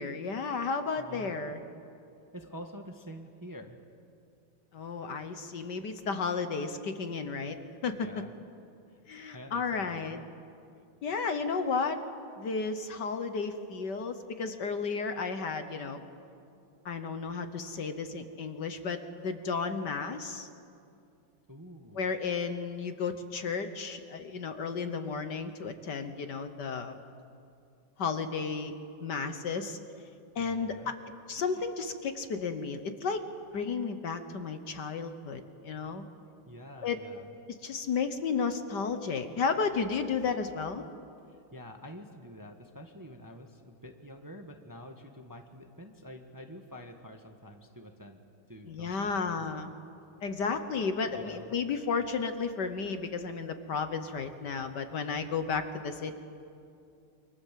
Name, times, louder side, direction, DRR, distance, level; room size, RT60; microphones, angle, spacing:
voice 1, 0.0-1.6 4.7-7.6 7.8-8.1 9.1-10.2 11.0-12.0 12.4-16.0 16.8-19.0 19.2-20.5 21.9-27.0 28.0-28.7 29.0-29.8 30.3-30.9 31.3-33.2 33.5-36.0 36.8-37.0 37.6-40.8 48.7-49.7 50.2-56.1, left 5 dB, 55° left, 8 dB, 1.6 m, -33 dB
voice 2, 1.0-1.5 2.3-3.8 8.0-8.3 8.9-9.0 9.3-10.2 21.5-22.1 30.4-30.9 36.5-37.3 41.5-48.2 48.5-49.5 51.1-51.5, equal, 10° right, 4 dB, 1.2 m, -47 dB
28.0 x 25.0 x 7.6 m, 2.6 s
omnidirectional pair, 2.3 m